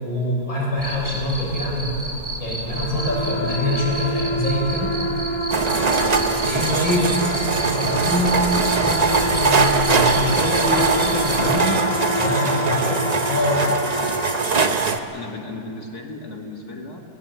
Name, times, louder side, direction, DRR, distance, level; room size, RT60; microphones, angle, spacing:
voice 1, 0.0-1.9 2.4-4.9 6.4-8.3 8.7-11.8 12.2-13.8, left 1 dB, 85° left, -4 dB, 7.1 m, -24 dB
Cricket, 0.8-11.4, right 2 dB, 30° right, 5.4 m, -31 dB
sound 1, 2.5-15.3, equal, 15° left, 1.1 m, -28 dB
sound 2, 5.5-15.0, right 4 dB, 60° right, 0.4 m, -22 dB
voice 2, 5.7-6.3 14.9-17.0, left 3 dB, 50° left, 1 dB, 2.3 m, -35 dB
23.0 x 19.5 x 7.5 m, 2.8 s
omnidirectional pair, 2.1 m